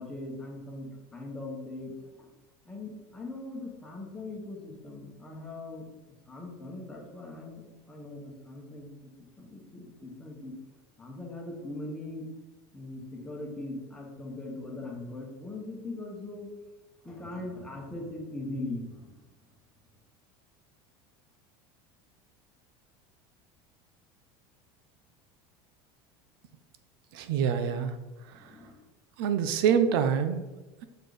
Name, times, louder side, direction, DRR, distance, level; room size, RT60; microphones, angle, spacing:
voice 1, 0.0-2.3 2.6-5.9 6.3-8.9 9.4-10.5 11.0-12.3 12.7-16.5 17.0-19.2 28.3-28.7, left 2 dB, 5° left, -1 dB, 1.1 m, -40 dB
voice 2, 27.1-27.9 29.2-30.4, right 7 dB, 75° right, 10 dB, 0.6 m, -25 dB
6.4 x 4.4 x 4.9 m, 1.1 s
cardioid pair, 175°, 12 cm